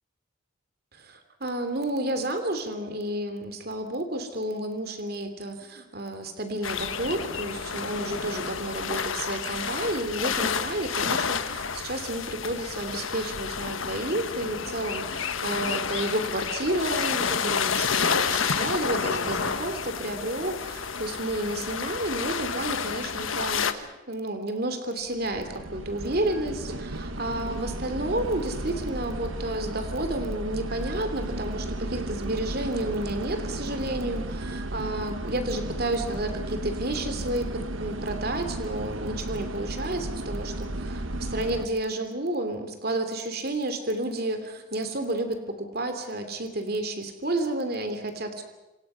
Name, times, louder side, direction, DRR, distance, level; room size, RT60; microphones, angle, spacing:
voice 1, 0.9-48.4, right 1 dB, 50° right, 7 dB, 2.8 m, -31 dB
sound 1, 6.6-23.7, left 6 dB, 80° left, 1.3 m, -30 dB
sound 2, 25.0-41.7, right 1 dB, 80° right, 1.4 m, -34 dB
27.5 x 26.0 x 5.6 m, 1.1 s
head